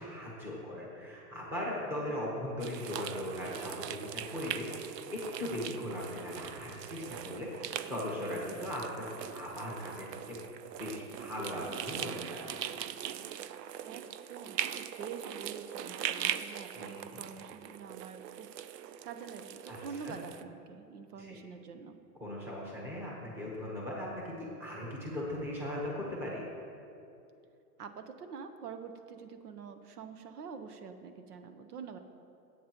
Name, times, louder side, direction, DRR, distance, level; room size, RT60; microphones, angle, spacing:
voice 1, 0.0-9.1 9.3-10.4 10.8-12.5 16.7-17.2 19.7-20.2 21.2-21.4 22.2-26.4, left 1 dB, 5° right, -4 dB, 1.0 m, -39 dB
sound 1, 2.6-20.4, right 10 dB, 85° right, 0.7 m, -41 dB
voice 2, 13.8-18.5 19.0-22.0 27.8-32.0, right 6 dB, 70° right, 7 dB, 1.1 m, -46 dB
21.5 x 8.4 x 3.0 m, 2.7 s
supercardioid pair, 175°, 47 cm